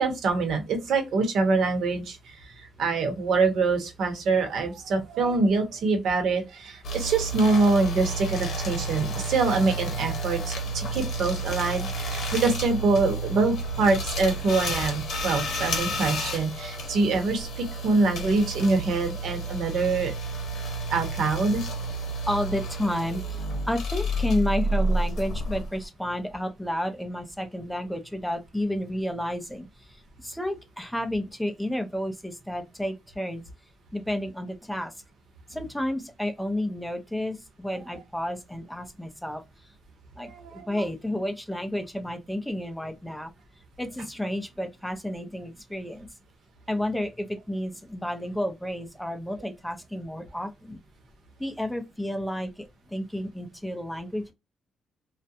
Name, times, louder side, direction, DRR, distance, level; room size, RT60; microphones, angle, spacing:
voice 1, 0.0-2.2 2.6-20.1 20.9-21.6 40.2-40.6, right 3 dB, 75° right, 0.9 m, -25 dB
sound 1, 6.8-25.8, right 1 dB, 70° left, 1.0 m, -31 dB
voice 2, 22.3-23.2 23.7-29.7 30.2-33.4 33.9-34.9 35.5-39.4 40.2-43.3 43.8-46.1 46.7-50.8 51.4-52.5 52.9-54.3, left 1 dB, 5° left, 0.5 m, -31 dB
2.4 x 2.1 x 2.7 m
cardioid pair, 135°, 0 cm